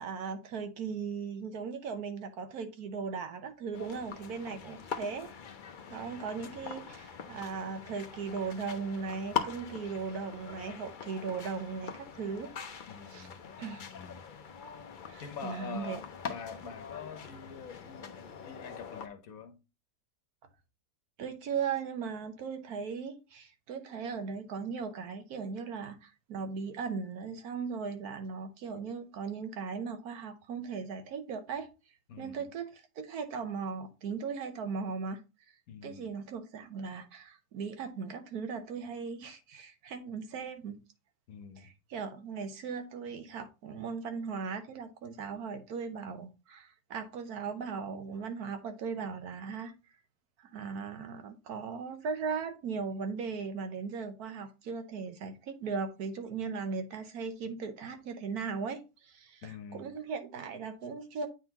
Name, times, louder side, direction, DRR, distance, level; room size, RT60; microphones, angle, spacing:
voice 1, 0.0-5.3 5.9-12.5 13.1-13.3 13.6-13.9 15.1-16.0 21.2-31.7 32.2-35.2 35.8-40.8 41.6-49.7 50.4-61.3, right 5 dB, 80° right, 1.4 m, -38 dB
sound 1, 3.7-19.1, left 7 dB, 50° left, 0.6 m, -42 dB
voice 2, 12.9-13.4 13.8-14.3 15.2-19.6 32.1-32.5 35.7-36.1 41.3-41.7 59.4-59.9, left 6 dB, 70° left, 1.3 m, -45 dB
8.8 x 3.8 x 2.9 m
omnidirectional pair, 1.6 m